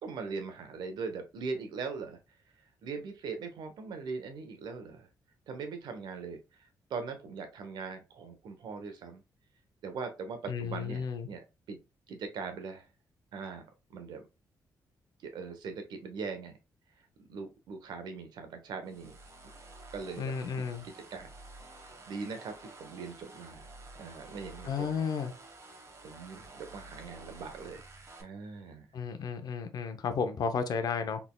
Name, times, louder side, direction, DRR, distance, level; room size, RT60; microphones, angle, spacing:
voice 1, 0.0-2.2 2.8-5.1 5.5-9.2 9.8-11.4 11.7-11.8 12.1-12.9 13.3-14.2 15.2-16.6 17.2-19.2 19.9-21.3 21.8-24.9 26.0-27.8 28.2-28.9, right 4 dB, 85° right, 0.9 m, -41 dB
voice 2, 10.5-11.3 20.2-20.9 24.6-25.3 28.9-31.2, left 6 dB, 65° left, 0.7 m, -33 dB
sound 1, 18.9-28.2, right 2 dB, 40° right, 1.2 m, -51 dB
4.1 x 3.5 x 2.2 m
cardioid pair, 100°, 7 cm